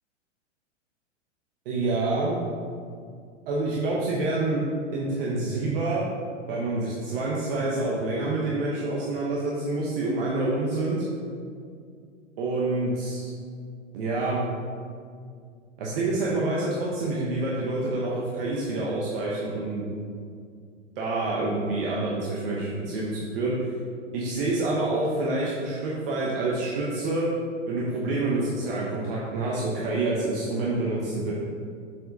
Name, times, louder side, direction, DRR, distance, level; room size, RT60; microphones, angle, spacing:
voice 1, 1.6-2.4 3.5-4.6 4.9-6.0 6.5-11.1 12.4-13.3 13.9-14.4 15.8-19.9 21.0-23.7 24.1-27.3 27.7-31.3, right 2 dB, 50° right, -4 dB, 1.1 m, -27 dB
7.6 x 4.7 x 3.8 m, 2.2 s
figure-of-eight pair, 105°, 37 cm